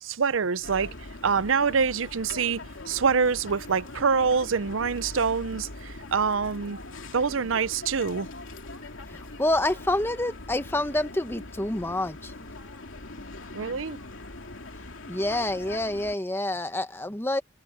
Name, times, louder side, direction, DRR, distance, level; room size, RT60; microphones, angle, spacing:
voice 1, 0.0-0.9 1.2-6.8 7.1-8.3 13.5-14.0, right 5 dB, 80° right, 0.6 m, -25 dB
sound 1, 0.6-16.2, left 2 dB, 75° left, 2.7 m, -42 dB
voice 2, 9.1-12.3 15.1-17.4, left 1 dB, 10° left, 1.0 m, -28 dB
head